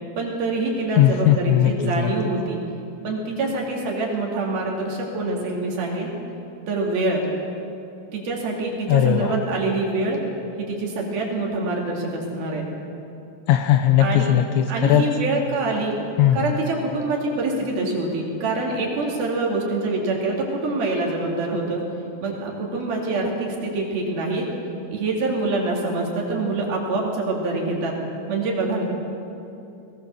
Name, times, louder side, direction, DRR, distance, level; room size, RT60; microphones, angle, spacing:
voice 1, 0.2-2.6 3.0-6.2 6.7-7.2 8.1-10.2 10.6-12.6 14.0-14.3 14.7-16.0 16.3-21.8 22.2-24.4 24.9-27.9 28.3-28.8, right 2 dB, 55° right, -2 dB, 4.0 m, -25 dB
voice 2, 1.0-2.1 8.9-9.3 13.5-15.0 16.2-16.4, left 11 dB, 80° left, 7 dB, 2.8 m, -18 dB
20.5 x 18.5 x 6.9 m, 2.8 s
omnidirectional pair, 5.7 m